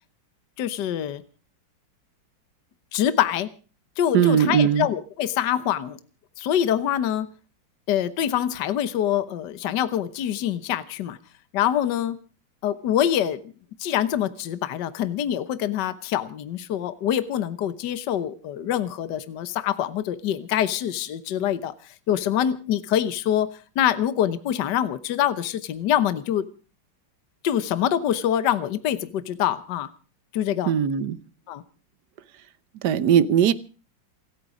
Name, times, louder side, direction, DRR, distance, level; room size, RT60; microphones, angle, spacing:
voice 1, 0.6-1.2 2.9-3.5 4.0-6.0 6.4-7.3 7.9-11.2 11.5-12.2 12.6-13.4 13.8-26.5 27.4-29.9 30.3-30.7 31.5-31.6, left 10 dB, 65° left, 14 dB, 1.6 m, -25 dB
voice 2, 4.1-4.9 30.7-31.2 32.8-33.5, right 8 dB, 65° right, 16 dB, 1.4 m, -19 dB
28.0 x 9.5 x 4.9 m, 0.37 s
omnidirectional pair, 2.1 m